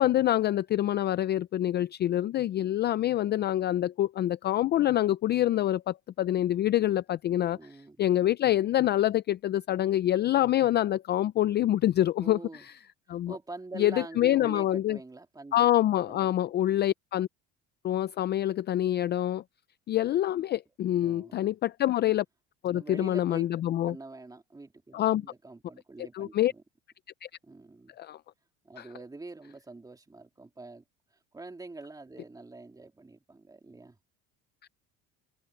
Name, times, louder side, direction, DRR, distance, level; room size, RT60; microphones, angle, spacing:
voice 1, 0.0-7.6 8.0-12.4 13.1-13.3 13.8-15.0 15.5-17.3 17.8-19.4 19.9-22.2 22.6-24.0 24.9-25.3 26.1-26.5 27.2-27.3 28.0-28.2 28.8-28.9, left 13 dB, 35° left, 0.4 m, -26 dB
voice 2, 7.5-8.0 12.2-12.6 13.1-15.7 16.0-16.5 21.0-21.5 22.7-23.4 23.8-26.6 27.4-28.0 28.6-30.8 31.3-34.0, right 3 dB, 10° right, 3.1 m, -45 dB
cardioid pair, 135°, 32 cm